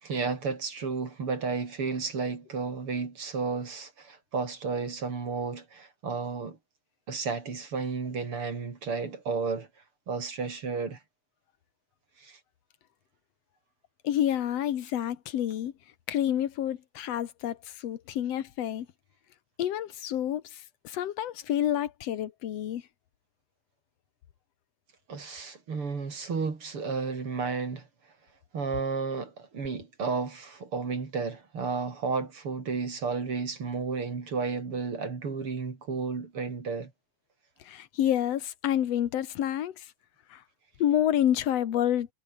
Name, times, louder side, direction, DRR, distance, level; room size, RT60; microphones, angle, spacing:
voice 1, 0.0-6.6 7.1-9.7 10.1-11.0 12.2-12.4 25.1-27.9 28.5-36.9, right 4 dB, 45° right, 4.0 m, -32 dB
voice 2, 14.0-15.7 16.1-18.9 19.6-22.8 37.7-39.9 40.3-40.4 40.8-42.1, left 11 dB, 60° left, 2.3 m, -28 dB
omnidirectional pair, 3.6 m